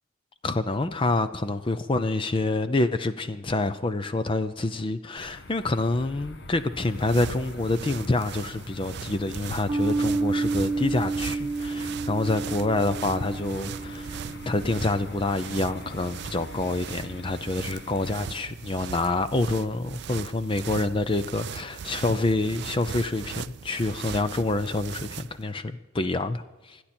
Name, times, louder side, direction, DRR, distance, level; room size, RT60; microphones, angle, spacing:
voice 1, 0.4-26.8, left 2 dB, 25° left, 0.5 m, -27 dB
sound 1, 5.2-18.2, left 1 dB, 55° left, 1.4 m, -44 dB
sound 2, 6.7-25.5, right 7 dB, 55° right, 0.4 m, -39 dB
sound 3, 9.7-16.4, right 3 dB, 20° right, 2.0 m, -31 dB
25.5 x 10.0 x 4.4 m
head